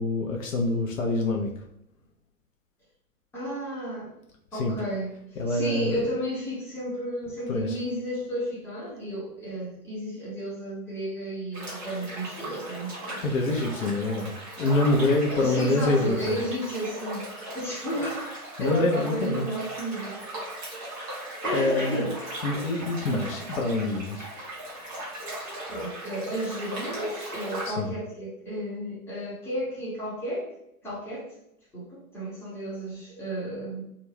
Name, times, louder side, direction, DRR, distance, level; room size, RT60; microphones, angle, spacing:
voice 1, 0.0-1.5 4.5-4.7 5.4-6.0 7.5-7.8 13.2-14.3 14.6-16.4 18.6-19.5 21.5-22.1 22.4-24.3 27.6-27.9, left 2 dB, 60° left, 0 dB, 0.7 m, -26 dB
voice 2, 3.3-4.1 4.5-5.1 5.5-13.2 15.3-17.3 17.5-18.3 18.6-20.2 21.4-22.1 24.9-25.0 25.7-30.5 30.8-31.3 31.7-33.8, right 1 dB, 5° left, -7 dB, 0.7 m, -32 dB
sound 1, 11.5-27.7, right 1 dB, 15° right, 0.3 m, -38 dB
2.4 x 2.2 x 3.2 m, 0.79 s
figure-of-eight pair, 110°, 46 cm